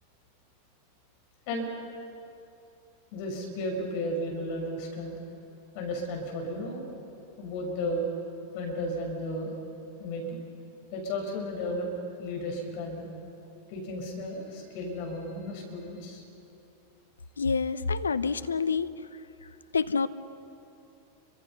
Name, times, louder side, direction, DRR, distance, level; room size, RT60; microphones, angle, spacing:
voice 1, 3.1-5.1 5.7-6.9 7.4-8.1 8.5-9.5 10.0-10.4 10.9-11.9 12.2-13.1 13.7-16.2, left 1 dB, 45° left, 1 dB, 6.3 m, -34 dB
voice 2, 17.4-18.9 19.7-20.1, left 5 dB, 75° left, 13 dB, 0.8 m, -27 dB
29.5 x 25.0 x 5.7 m, 2.8 s
figure-of-eight pair, 90°, 0 cm